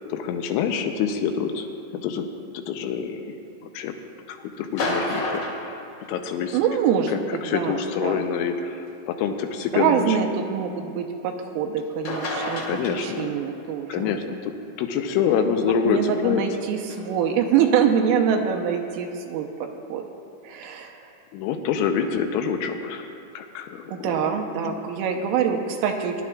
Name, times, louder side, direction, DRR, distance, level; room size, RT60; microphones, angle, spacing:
voice 1, 0.1-1.7 2.0-2.3 2.7-3.4 3.7-3.9 4.3-5.7 6.1-6.6 7.1-10.2 12.7-13.3 13.9-14.5 14.8-16.4 21.3-23.1 23.3-24.8, left 7 dB, 80° left, 6 dB, 3.0 m, -26 dB
sound 1, 4.6-6.6 7.9-8.0 8.9-9.0 11.8-11.9 12.0-13.5 16.9-17.0, left 1 dB, 45° left, 3.2 m, -30 dB
voice 2, 6.5-8.2 9.7-14.2 15.6-20.0 20.4-21.0 23.9-26.2, right 7 dB, 85° right, 3 dB, 3.3 m, -25 dB
23.0 x 12.0 x 2.4 m, 2.7 s
omnidirectional pair, 5.8 m